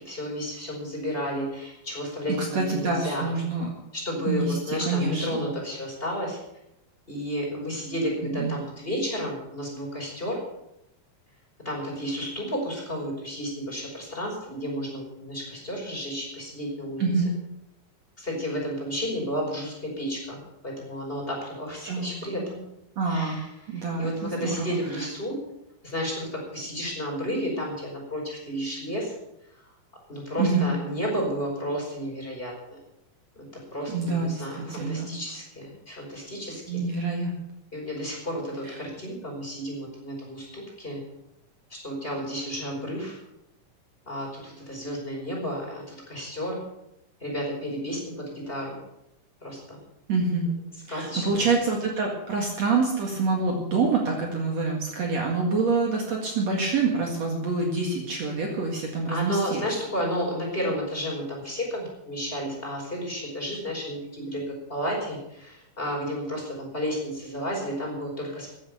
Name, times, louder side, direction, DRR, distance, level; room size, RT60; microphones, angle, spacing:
voice 1, 0.0-3.3 3.9-6.4 7.1-10.4 11.6-17.1 18.2-20.4 20.6-22.6 23.1-23.5 23.7-25.4 25.8-29.1 30.1-32.8 33.3-36.8 37.7-41.0 41.7-43.2 44.1-46.6 47.2-48.8 49.4-49.8 50.9-51.5 59.1-68.5, equal, 15° left, -2 dB, 4.9 m, -32 dB
voice 2, 2.3-3.7 4.2-5.5 8.4-8.5 17.0-17.3 21.9-22.1 23.0-25.0 30.4-30.7 33.9-35.2 36.7-37.4 38.6-38.8 50.1-50.5 50.9-59.6, right 3 dB, 55° right, 0 dB, 2.9 m, -26 dB
15.0 x 9.5 x 6.8 m, 0.83 s
omnidirectional pair, 3.9 m